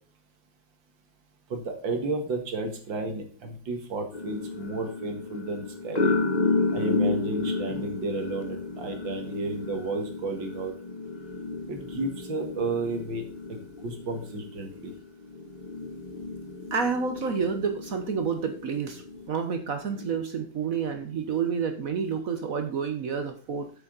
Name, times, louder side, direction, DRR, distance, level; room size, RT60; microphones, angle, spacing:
voice 1, 1.5-6.2 6.7-10.7 11.7-13.2 13.5-14.9, right 2 dB, 75° right, 5 dB, 2.4 m, -32 dB
sound 1, 4.1-19.3 19.8-20.2, left 3 dB, 35° left, 0.7 m, -32 dB
voice 2, 16.7-19.0 19.3-23.7, right 6 dB, 55° right, 7 dB, 1.2 m, -29 dB
8.3 x 8.1 x 3.9 m, 0.41 s
omnidirectional pair, 2.1 m